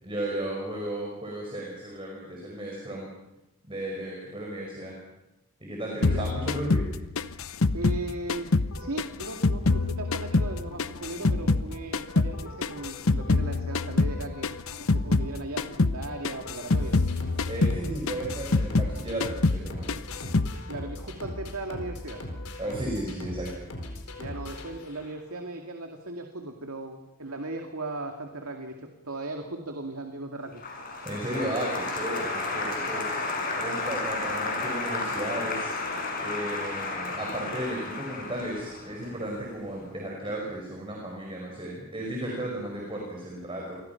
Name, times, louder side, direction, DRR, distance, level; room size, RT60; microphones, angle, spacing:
voice 1, 0.0-3.1 3.7-5.0 5.6-6.9 17.5-20.1 22.6-23.5 31.0-43.8, right 1 dB, 25° right, -1 dB, 5.4 m, -34 dB
sound 1, 6.0-8.7 9.0-11.7 11.9-15.3 15.6-16.0 16.2-19.0 19.2-19.6 19.9-20.5, left 3 dB, 65° left, 0.9 m, -25 dB
voice 2, 6.0-6.3 7.7-14.5 14.8-17.0 20.7-22.2 24.2-30.6, right 2 dB, 75° right, 3 dB, 2.3 m, -37 dB
sound 2, 8.7-25.4, left 1 dB, 85° left, 4.4 m, -41 dB
Applause, 30.6-39.6, left 3 dB, 40° left, 6.2 m, -32 dB
29.0 x 23.0 x 5.9 m, 0.98 s
head